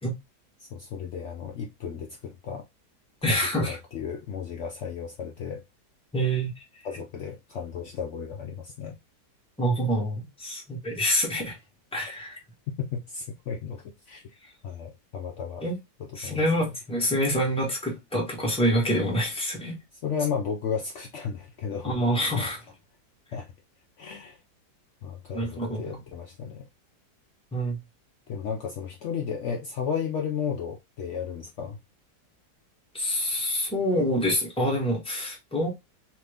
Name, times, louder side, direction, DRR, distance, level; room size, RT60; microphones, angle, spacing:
voice 1, 0.6-2.6 3.6-5.6 6.8-9.0 12.7-14.2 14.6-15.6 16.2-16.7 20.0-22.0 22.3-22.5 23.3-23.5 24.0-24.4 25.0-26.7 28.3-31.8, left 7 dB, 80° left, 0.6 m, -34 dB
voice 2, 3.2-3.8 6.1-6.6 9.6-11.5 11.9-12.4 15.6-15.7 16.1-19.8 21.8-22.6 25.3-26.0 27.5-27.8 32.9-35.7, equal, 5° left, 0.8 m, -26 dB
2.9 x 2.6 x 3.3 m
omnidirectional pair, 1.9 m